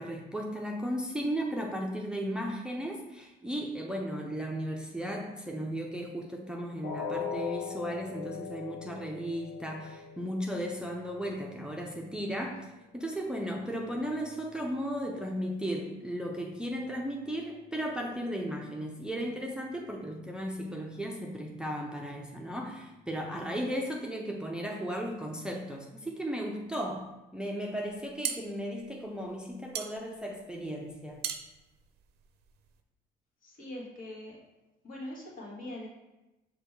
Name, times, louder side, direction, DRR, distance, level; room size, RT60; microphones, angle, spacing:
voice 1, 0.0-12.7 12.9-31.2, equal, 5° right, 0 dB, 0.4 m, -35 dB
sound 1, 6.8-12.8 13.2-13.4 13.9-14.0, left 6 dB, 85° left, 1.0 m, -41 dB
sound 2, 27.9-32.8, right 9 dB, 75° right, 0.4 m, -39 dB
voice 2, 33.4-34.4 34.8-35.9, left 1 dB, 55° left, -3 dB, 1.4 m, -42 dB
5.1 x 2.2 x 4.5 m, 1.0 s
cardioid pair, 110°, 17 cm